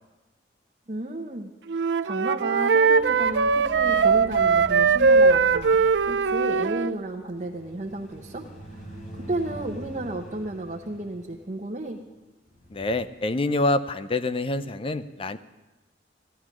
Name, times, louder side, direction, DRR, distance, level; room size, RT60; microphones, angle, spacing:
voice 1, 0.9-1.5 2.0-5.8 6.1-8.5 9.1-12.0, right 1 dB, 40° right, 0 dB, 0.9 m, -33 dB
Wind instrument woodwind instrument, 1.7-6.9, right 5 dB, 80° right, 0.5 m, -20 dB
sound 1, 2.7-13.0, right 1 dB, 50° left, 3.9 m, -44 dB
voice 2, 12.7-15.4, left 2 dB, 30° left, 12 dB, 0.6 m, -26 dB
13.5 x 13.5 x 6.1 m, 1.1 s
head